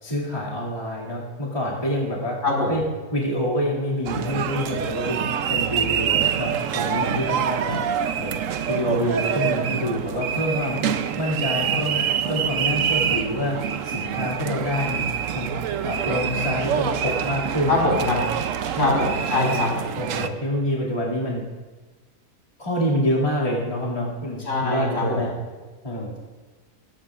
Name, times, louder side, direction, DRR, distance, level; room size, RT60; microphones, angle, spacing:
voice 1, 0.0-2.4 2.7-2.8 3.1-5.2 5.5-8.4 8.7-10.8 11.2-18.2 18.7-18.9 19.3-19.6 20.0-21.4 22.6-25.3 25.8-26.2, equal, 20° left, -7 dB, 2.5 m, -27 dB
sound 1, 4.0-20.3, right 8 dB, 65° right, 1.0 m, -26 dB
voice 2, 17.7-18.2 18.8-19.7 24.5-25.2, left 2 dB, 55° left, -2 dB, 5.2 m, -22 dB
21.5 x 17.5 x 2.5 m, 1.3 s
omnidirectional pair, 1.6 m